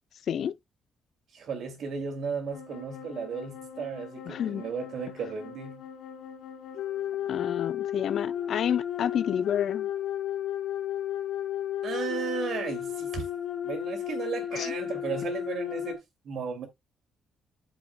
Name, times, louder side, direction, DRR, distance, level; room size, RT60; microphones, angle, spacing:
voice 1, 1.3-5.8 11.8-13.2 13.6-16.7, right 6 dB, 65° right, 2.6 m, -35 dB
sound 1, 2.5-15.9, left 10 dB, 90° left, 3.6 m, -34 dB
voice 2, 4.3-4.6 7.3-9.9 14.5-14.7, left 9 dB, 65° left, 0.5 m, -29 dB
12.5 x 5.0 x 2.2 m
cardioid pair, 90°, 0 cm